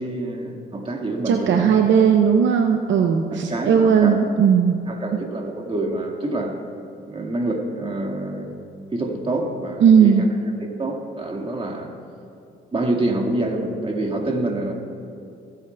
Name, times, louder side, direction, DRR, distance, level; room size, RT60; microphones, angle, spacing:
voice 1, 0.0-1.8 3.3-4.2 4.9-6.6 7.0-8.5 8.9-10.3 10.6-11.9 12.7-14.7, right 2 dB, 25° right, 1 dB, 1.8 m, -27 dB
voice 2, 1.3-4.8 9.8-10.3, right 7 dB, 70° right, 4 dB, 0.7 m, -17 dB
25.0 x 8.5 x 2.3 m, 2.5 s
cardioid pair, 90°, 20 cm